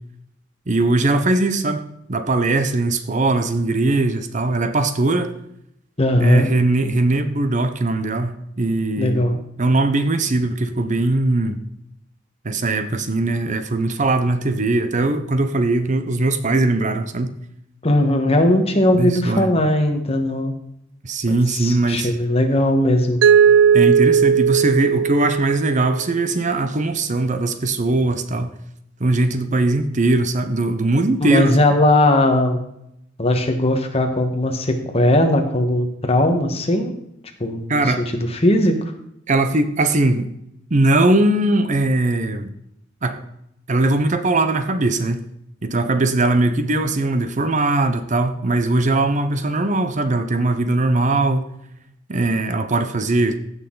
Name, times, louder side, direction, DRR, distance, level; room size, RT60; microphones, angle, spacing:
voice 1, 0.7-1.8 2.1-5.3 6.2-11.6 12.4-17.4 18.9-19.5 21.0-22.1 23.7-28.5 29.0-31.6 37.7-38.1 39.3-40.3 40.7-42.5 43.0-43.2 43.7-45.3 45.6-51.5 52.1-53.4, right 2 dB, 40° right, 9 dB, 0.8 m, -20 dB
voice 2, 6.0-6.5 9.0-9.4 17.8-20.5 21.2-23.2 31.2-32.6 33.2-36.9 37.4-38.7, left 1 dB, 30° left, 4 dB, 1.4 m, -18 dB
Mallet percussion, 23.2-26.1, right 7 dB, 75° right, 0.3 m, -16 dB
16.0 x 6.4 x 3.9 m, 0.77 s
head